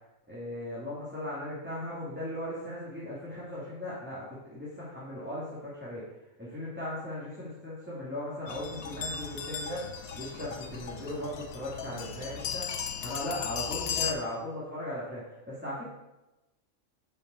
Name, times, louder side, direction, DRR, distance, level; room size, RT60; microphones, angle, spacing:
voice 1, 0.3-6.0 6.4-9.8 10.1-12.6 13.0-15.8, left 1 dB, 10° right, -9 dB, 2.4 m, -37 dB
sound 1, 8.5-14.1, left 7 dB, 85° left, 1.3 m, -36 dB
7.7 x 5.4 x 7.0 m, 1.0 s
omnidirectional pair, 1.4 m